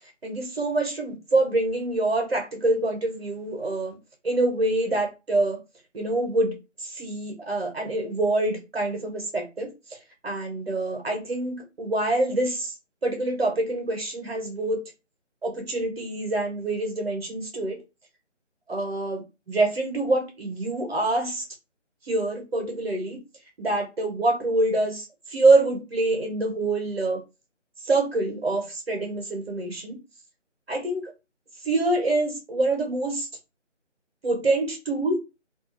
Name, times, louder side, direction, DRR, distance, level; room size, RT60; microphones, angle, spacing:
voice 1, 0.2-4.0 4.2-5.6 5.9-6.5 6.8-9.7 10.2-12.7 13.0-14.8 15.4-17.8 18.7-19.2 19.5-21.4 22.1-23.2 23.6-27.2 27.8-30.0 30.7-31.1 31.6-33.3 34.2-35.2, right 2 dB, 55° right, 0.9 m, -25 dB
2.5 x 2.4 x 2.8 m
figure-of-eight pair, 160°, 37 cm